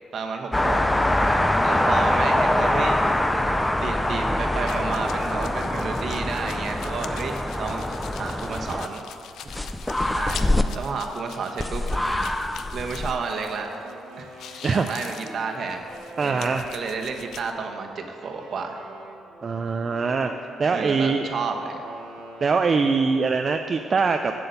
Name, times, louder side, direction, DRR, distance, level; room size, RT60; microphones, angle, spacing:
voice 1, 0.1-0.8 1.1-1.4 1.6-3.0 3.7-9.0 10.1-10.4 10.7-12.2 12.7-13.9 14.2-15.9 16.2-18.8 20.7-21.8, right 4 dB, 60° right, 3 dB, 1.2 m, -31 dB
sound 1, 0.5-8.9 9.5-10.6 11.6-13.1, left 1 dB, 10° left, 0.5 m, -24 dB
sound 2, 4.7-13.9 14.2-17.5, left 8 dB, 75° left, 0.5 m, -43 dB
Wind instrument woodwind instrument, 13.2-17.7 18.2-22.9, right 2 dB, 85° right, 1.4 m, -45 dB
voice 2, 16.2-16.7 19.4-20.3 20.6-21.3 22.4-24.3, right 4 dB, 40° right, 5 dB, 0.4 m, -22 dB
7.7 x 7.7 x 6.9 m, 2.5 s
cardioid pair, 90°, 0 cm